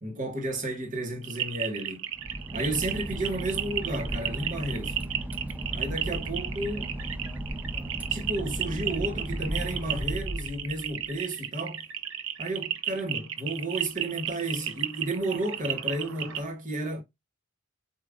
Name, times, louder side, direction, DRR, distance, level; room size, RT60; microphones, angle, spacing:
voice 1, 0.0-2.1 2.5-5.0 5.7-6.9 8.1-11.8 12.4-17.0, right 1 dB, 40° right, 1.2 m, -32 dB
sound 1, 1.2-16.4, right 10 dB, 65° right, 0.6 m, -33 dB
Boat Water vehicle / Engine, 2.1-11.1, right 1 dB, 5° right, 0.4 m, -35 dB
6.9 x 2.5 x 2.4 m
head